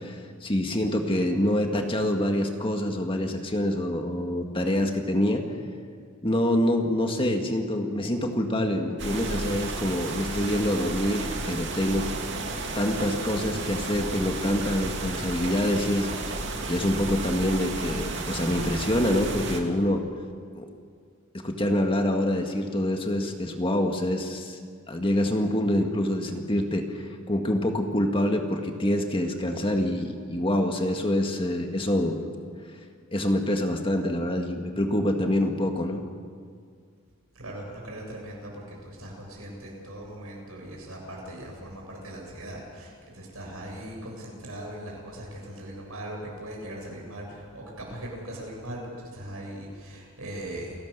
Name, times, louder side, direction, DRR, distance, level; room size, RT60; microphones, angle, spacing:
voice 1, 0.0-5.4 6.2-12.1 12.7-16.1 16.7-20.0 20.5-20.7 21.3-24.6 24.9-32.2 33.1-36.0, left 1 dB, 25° left, 3 dB, 1.9 m, -26 dB
sound 1, 9.0-19.6, right 3 dB, 55° right, 2.5 m, -33 dB
voice 2, 37.3-50.7, right 1 dB, 80° right, -1 dB, 7.5 m, -39 dB
29.0 x 17.5 x 6.8 m, 2.1 s
head